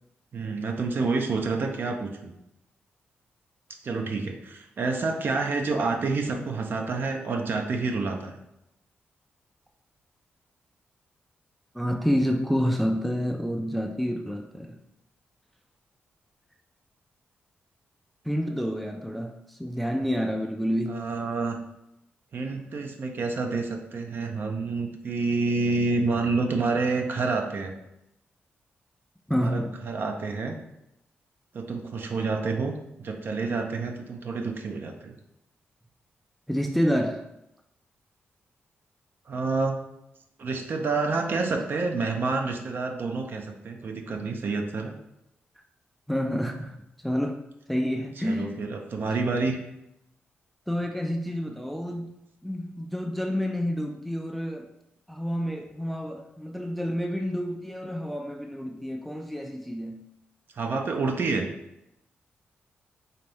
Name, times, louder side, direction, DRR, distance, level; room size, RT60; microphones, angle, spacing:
voice 1, 0.3-2.3 3.8-8.4 20.9-21.6 22.3-27.7 29.3-30.6 31.5-32.7 33.0-35.1 39.3-39.8 40.4-44.9 48.2-49.6 60.6-61.5, right 3 dB, 55° right, 3 dB, 0.6 m, -28 dB
voice 2, 11.7-14.8 18.3-21.0 29.3-29.8 36.5-37.2 46.1-46.7 47.0-47.4 47.7-48.6 50.7-54.7 55.1-60.0, equal, ahead, 3 dB, 0.3 m, -29 dB
4.1 x 2.6 x 3.3 m, 0.84 s
cardioid pair, 100°, 4 cm